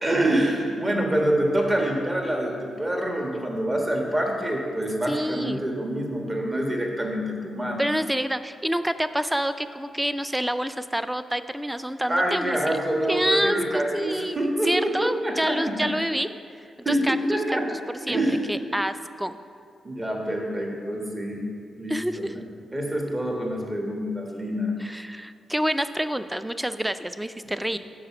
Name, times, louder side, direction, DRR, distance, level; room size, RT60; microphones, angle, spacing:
voice 1, 0.0-7.8 12.1-15.6 16.8-17.6 18.1-18.4 19.8-21.4 21.8-22.3 22.7-24.7 27.7-27.8, right 1 dB, 30° right, 0 dB, 1.4 m, -26 dB
voice 2, 5.1-5.6 7.8-12.8 13.1-16.3 16.9-17.2 18.1-18.2 18.5-19.4 21.9-22.4 24.8-27.8, equal, 10° right, 12 dB, 0.4 m, -27 dB
6.4 x 4.8 x 5.9 m, 2.3 s
cardioid pair, 65°, 0 cm